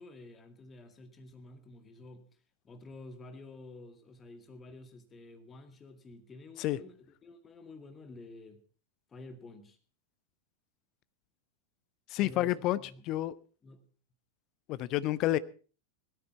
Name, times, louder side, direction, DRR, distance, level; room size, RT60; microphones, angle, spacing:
voice 1, 0.0-2.3 2.6-8.6 9.1-9.8 12.2-13.0 13.6-13.8, left 2 dB, 20° left, 2.1 m, -50 dB
voice 2, 12.1-12.8 13.1-13.3 14.7-15.4, left 15 dB, 40° left, 0.7 m, -29 dB
17.0 x 13.5 x 4.3 m
figure-of-eight pair, 90°, 0 cm